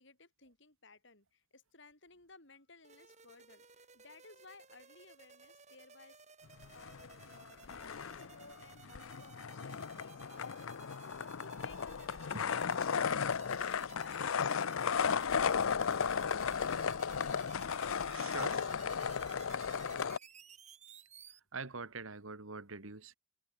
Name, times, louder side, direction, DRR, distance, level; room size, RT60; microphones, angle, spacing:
voice 1, 0.0-15.5 17.6-20.4, left 3 dB, 60° left, 7.1 m, -59 dB
sound 1, 2.8-21.4, right 6 dB, 35° right, 5.6 m, -57 dB
sound 2, 6.6-7.4 7.7-20.2, left 6 dB, 80° left, 0.6 m, -35 dB
voice 2, 18.1-18.6 21.5-23.1, right 4 dB, 75° right, 1.9 m, -44 dB
head